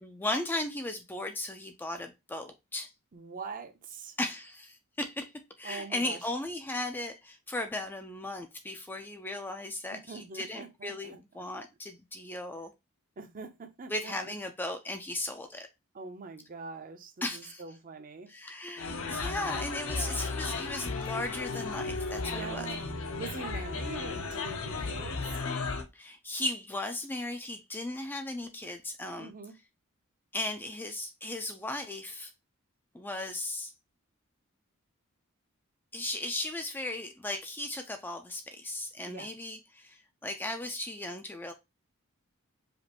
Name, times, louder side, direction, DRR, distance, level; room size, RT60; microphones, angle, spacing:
voice 1, 0.0-2.9 4.2-5.3 5.6-12.7 13.9-15.7 17.2-17.6 18.3-22.7 25.9-29.3 30.3-32.3 32.9-33.7 35.9-41.5, left 1 dB, 10° left, 0.4 m, -36 dB
voice 2, 3.1-4.2 5.6-6.2 9.9-11.2 13.2-14.1 15.9-18.3 19.9-20.2 22.3-22.8 23.2-25.4 29.2-29.5 39.0-39.3, right 4 dB, 40° right, 0.6 m, -43 dB
sound 1, 18.8-25.8, left 3 dB, 65° left, 0.7 m, -34 dB
5.1 x 2.5 x 2.9 m
head